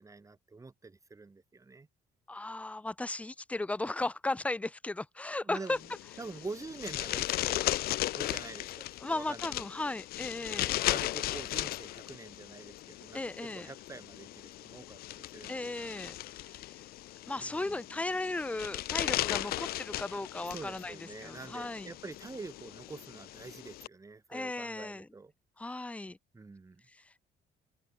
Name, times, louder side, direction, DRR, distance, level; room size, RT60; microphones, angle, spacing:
voice 1, 0.0-1.9 5.4-5.8 6.2-9.5 10.9-15.9 17.4-17.8 20.4-25.3 26.3-26.8, right 3 dB, 20° right, 2.9 m, -46 dB
voice 2, 2.3-5.8 9.0-10.7 13.1-13.7 15.5-16.9 17.3-21.9 24.3-25.1 25.6-26.2 26.9-27.2, left 2 dB, 10° left, 0.7 m, -36 dB
sound 1, 5.7-23.9, left 16 dB, 65° left, 0.4 m, -37 dB
open air
cardioid pair, 110°, 17 cm